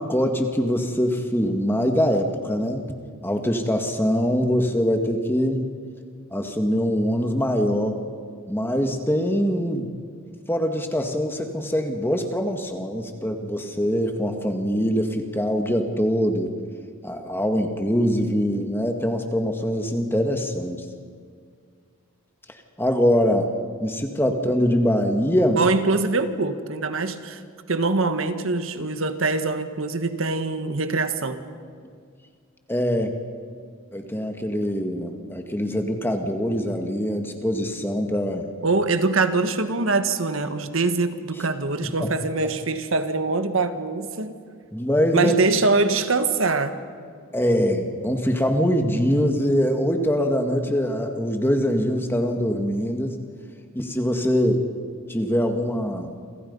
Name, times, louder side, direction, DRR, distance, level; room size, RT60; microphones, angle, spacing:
voice 1, 0.0-2.9 3.2-5.6 6.3-8.0 8.5-9.9 10.5-16.6 17.0-20.8 22.8-23.5 23.8-25.6 32.7-33.1 33.9-38.5 42.0-42.1 44.7-45.3 47.3-53.2 53.7-54.7 55.1-56.1, equal, 10° left, 5 dB, 1.9 m, -23 dB
voice 2, 25.6-27.4 27.7-31.4 38.6-44.3 45.1-46.7, right 3 dB, 75° right, 9 dB, 1.5 m, -23 dB
28.0 x 26.0 x 5.5 m, 2.1 s
head